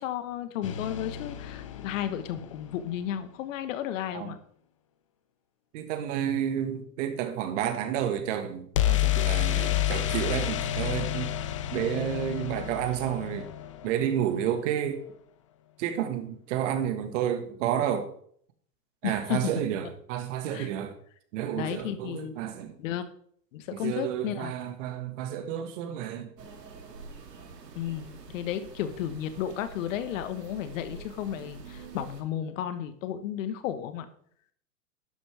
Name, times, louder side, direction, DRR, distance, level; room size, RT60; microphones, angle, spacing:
voice 1, 0.0-4.4 19.0-19.5 20.5-20.7 21.5-22.3 22.8-23.0 23.5-24.5 27.7-34.1, left 10 dB, 50° left, 1.4 m, -33 dB
sound 1, 0.6-2.6 8.7-14.5, left 12 dB, 25° left, 0.3 m, -30 dB
voice 2, 5.7-11.3 11.7-13.5 13.8-15.0 15.8-18.1 19.0-20.9 21.3-22.8 23.7-26.3, right 10 dB, 50° right, 1.8 m, -30 dB
sound 2, 26.4-32.2, right 4 dB, 80° right, 2.4 m, -46 dB
12.5 x 8.9 x 3.5 m
hypercardioid pair, 115°, 48 cm